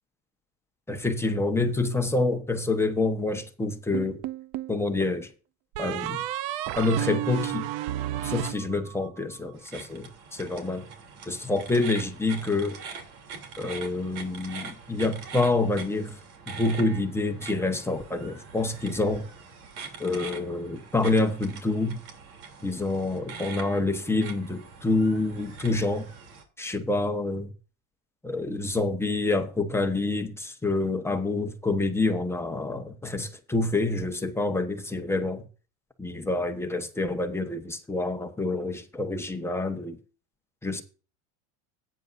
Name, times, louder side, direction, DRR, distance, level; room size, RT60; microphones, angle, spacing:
voice 1, 0.9-4.2 4.7-5.3 5.8-6.2 6.7-7.7 8.2-10.9 11.3-12.8 13.6-16.2 16.5-19.3 20.0-22.0 22.6-26.1 26.6-27.5 28.2-35.5 36.0-40.0 40.6-40.8, left 2 dB, 5° left, 1.2 m, -27 dB
sound 1, 3.9-4.8 5.7-9.2, right 14 dB, 55° right, 0.8 m, -32 dB
sound 2, 9.6-26.4, right 5 dB, 80° right, 3.3 m, -43 dB
15.5 x 9.6 x 2.7 m
supercardioid pair, 145°, 42 cm